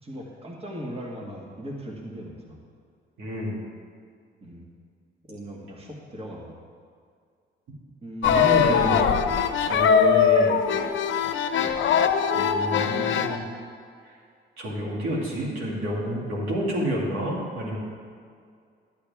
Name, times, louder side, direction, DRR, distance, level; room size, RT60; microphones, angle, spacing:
voice 1, 0.0-2.6 4.4-4.7 5.3-6.6 8.0-9.3 9.6-9.8 11.6-11.8, equal, 30° right, -2 dB, 1.8 m, -38 dB
voice 2, 3.2-3.6 8.2-9.1 9.6-10.6 12.3-13.4 14.0-14.1 14.6-17.8, equal, 85° right, -4 dB, 2.7 m, -29 dB
sound 1, 8.2-13.4, left 7 dB, 70° left, 0.7 m, -21 dB
12.0 x 11.0 x 3.6 m, 2.2 s
cardioid pair, 90°, 20 cm